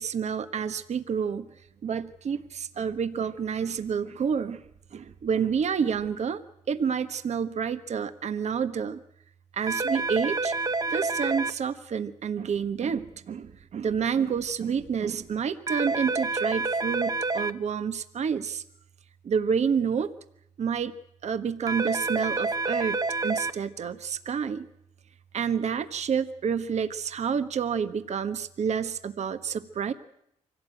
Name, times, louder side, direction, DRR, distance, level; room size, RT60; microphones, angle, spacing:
voice 1, 0.0-1.5 1.8-4.6 4.9-6.4 6.7-9.0 9.5-10.5 10.9-18.6 19.2-20.1 20.6-20.9 21.2-24.7 25.3-29.9, right 7 dB, 55° right, 10 dB, 1.3 m, -29 dB
sound 1, 9.7-11.5 15.7-17.5 21.7-23.5, right 3 dB, 30° right, 1.0 m, -28 dB
25.0 x 16.5 x 9.1 m, 0.76 s
cardioid pair, 100°, 14 cm